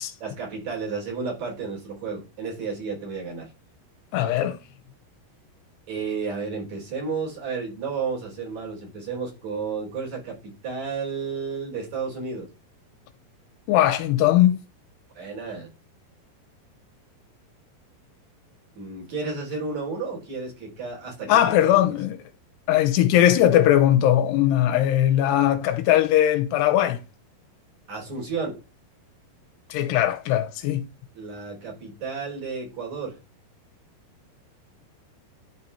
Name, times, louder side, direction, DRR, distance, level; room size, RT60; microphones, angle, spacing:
voice 1, 0.2-3.5 5.9-12.5 15.1-15.7 18.7-21.8 27.9-28.6 31.1-33.2, right 5 dB, 45° right, 5.2 m, -32 dB
voice 2, 4.1-4.6 13.7-14.6 21.3-22.2 22.7-27.0 29.7-30.8, left 12 dB, 85° left, 2.9 m, -19 dB
12.0 x 4.6 x 4.2 m
omnidirectional pair, 4.9 m